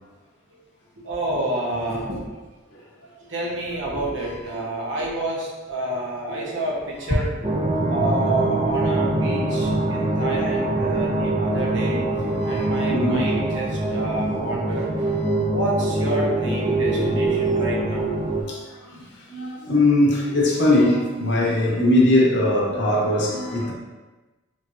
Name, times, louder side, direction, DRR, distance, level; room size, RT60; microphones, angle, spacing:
voice 1, 1.0-2.2 3.3-7.3 7.9-12.0 12.4-14.8 15.5-18.1, right 1 dB, 65° right, -4 dB, 0.9 m, -28 dB
sound 1, 7.4-18.4, right 2 dB, 25° right, 0.4 m, -23 dB
voice 2, 11.5-13.4 15.0-15.5 17.2-17.3 18.4-18.6 18.9-23.7, left 1 dB, 60° left, -4 dB, 0.9 m, -22 dB
4.0 x 3.1 x 2.5 m, 1.2 s
head